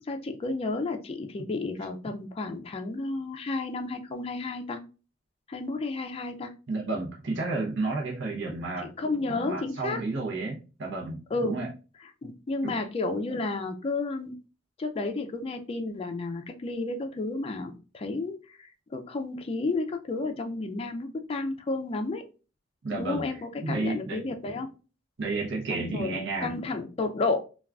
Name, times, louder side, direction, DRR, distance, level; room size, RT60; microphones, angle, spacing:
voice 1, 0.1-4.8 5.5-6.5 8.8-10.0 11.3-11.6 12.2-14.4 14.8-22.2 22.9-24.7 25.7-27.4, left 3 dB, 30° left, 5 dB, 0.3 m, -32 dB
voice 2, 6.7-8.9 9.3-11.7 12.6-12.8 22.8-24.3 25.2-26.5, right 3 dB, 65° right, -2 dB, 0.7 m, -32 dB
3.5 x 2.3 x 2.3 m, 0.33 s
head